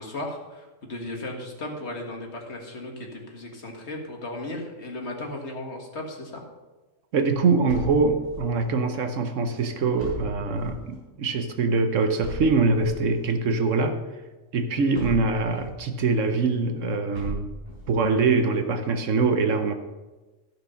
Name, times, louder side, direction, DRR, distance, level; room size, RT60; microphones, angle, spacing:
voice 1, 0.0-6.4, left 1 dB, 55° left, 1 dB, 2.0 m, -36 dB
voice 2, 7.1-14.0 14.5-17.5 17.9-19.7, right 4 dB, 70° right, 7 dB, 1.2 m, -23 dB
sound 1, 7.7-8.6 10.0-10.9 12.2-13.2 14.9-15.8 17.1-18.0, left 1 dB, 50° right, 4.4 m, -37 dB
14.0 x 6.2 x 5.6 m, 1.2 s
omnidirectional pair, 1.4 m